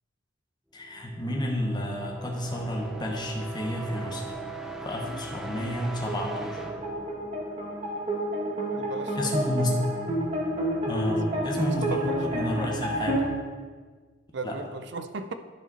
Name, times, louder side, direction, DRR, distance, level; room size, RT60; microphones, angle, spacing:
voice 1, 0.7-4.4 4.8-6.6 9.1-9.7 10.9-13.2 14.4-14.6, left 1 dB, 20° left, 0 dB, 1.1 m, -31 dB
sound 1, 0.8-8.5, right 2 dB, ahead, 0.5 m, -41 dB
sound 2, 4.0-13.3, right 1 dB, 35° right, 1.8 m, -30 dB
voice 2, 8.7-9.3 11.3-12.2 14.3-15.3, right 3 dB, 60° right, 9 dB, 0.5 m, -37 dB
11.0 x 4.9 x 4.2 m, 1.5 s
head